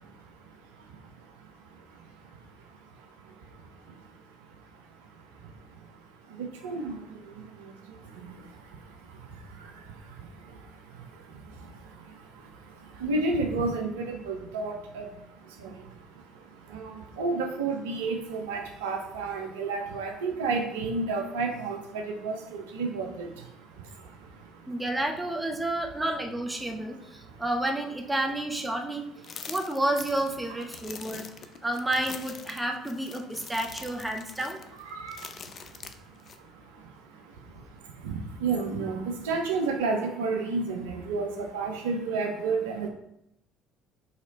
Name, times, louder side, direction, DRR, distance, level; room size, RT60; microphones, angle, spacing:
voice 1, 0.0-24.8 26.9-27.4 29.3-29.5 30.5-31.7 34.7-42.9, right 3 dB, 75° right, 3 dB, 0.6 m, -34 dB
voice 2, 24.7-29.1 29.5-31.3 31.6-34.6, right 1 dB, 15° right, 3 dB, 0.8 m, -30 dB
sound 1, 29.2-36.4, left 6 dB, 45° left, 0.4 m, -44 dB
4.2 x 2.9 x 4.0 m, 0.79 s
hypercardioid pair, 55°, 0 cm